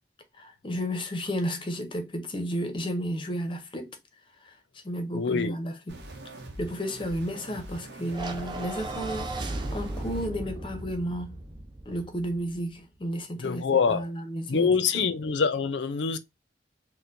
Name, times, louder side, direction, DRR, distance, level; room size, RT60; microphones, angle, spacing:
voice 1, 0.4-3.9 4.4-4.5 4.8-6.0 6.6-11.4 11.9-15.1, equal, 30° left, 0.6 m, -33 dB
voice 2, 5.1-5.6 13.4-14.0 14.5-16.2, left 5 dB, 90° left, 0.5 m, -25 dB
sound 1, 5.9-10.3, right 1 dB, 75° right, 0.8 m, -43 dB
sound 2, 8.1-12.5, right 2 dB, 25° right, 0.4 m, -36 dB
4.3 x 2.1 x 2.5 m
head